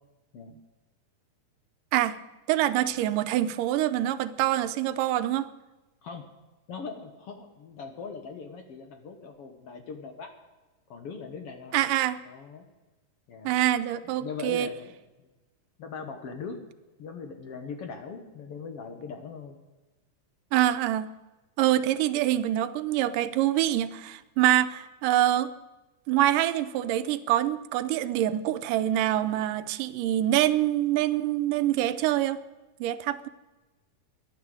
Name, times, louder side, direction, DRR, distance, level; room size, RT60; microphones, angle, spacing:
voice 1, 2.5-5.5 11.7-12.2 13.4-14.7 20.5-21.1 21.6-25.5 26.1-32.4 32.8-33.3, right 13 dB, 90° right, 12 dB, 2.3 m, -25 dB
voice 2, 6.7-10.3 10.9-11.8 12.3-12.7 13.3-13.5 14.0-14.9 15.8-16.6 17.0-19.6, left 5 dB, 60° left, 6 dB, 1.8 m, -40 dB
13.5 x 11.0 x 7.8 m, 1.1 s
omnidirectional pair, 3.7 m